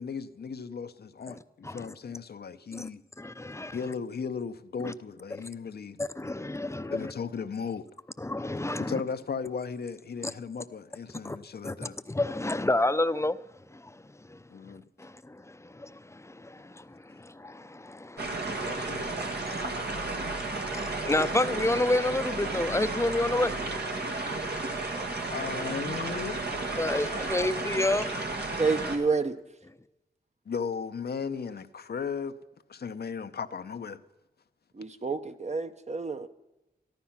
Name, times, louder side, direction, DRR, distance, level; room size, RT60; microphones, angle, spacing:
voice 1, 0.0-3.0 3.7-6.0 6.9-7.9 8.8-12.0 14.5-14.8 18.4-19.3 25.3-26.6 27.1-27.2 30.5-32.4 32.7-34.0, left 6 dB, 70° left, 0.7 m, -36 dB
voice 2, 1.3-1.9 2.7-2.9 3.2-3.8 4.8-4.9 6.0-7.1 8.2-9.0 10.2-10.3 11.2-11.4 11.6-11.8 12.1-13.4 13.7-14.4 14.7-18.9 19.5-19.6 20.2-23.5 24.9-25.3 26.8-28.1, left 2 dB, 15° left, 0.6 m, -30 dB
sound 1, 18.2-29.0, right 2 dB, 80° right, 1.7 m, -33 dB
voice 3, 28.6-29.3 34.7-36.3, right 4 dB, 40° right, 0.8 m, -29 dB
14.0 x 12.0 x 5.7 m
cardioid pair, 55°, 17 cm